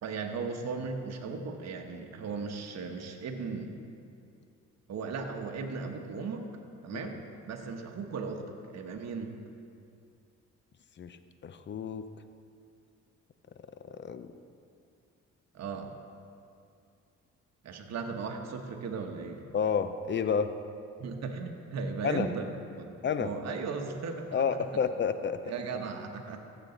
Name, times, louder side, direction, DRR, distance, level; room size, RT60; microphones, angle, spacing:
voice 1, 0.0-3.7 4.9-6.4 6.8-9.4 15.5-15.9 17.6-19.5 21.0-24.7 25.4-26.4, right 4 dB, 60° right, 3 dB, 1.1 m, -37 dB
voice 2, 11.4-12.0 13.9-14.3 19.5-20.5 22.0-22.3 23.0-23.3 24.3-25.4, left 6 dB, 40° left, 11 dB, 0.6 m, -30 dB
14.5 x 6.9 x 4.0 m, 2.4 s
cardioid pair, 90°, 30 cm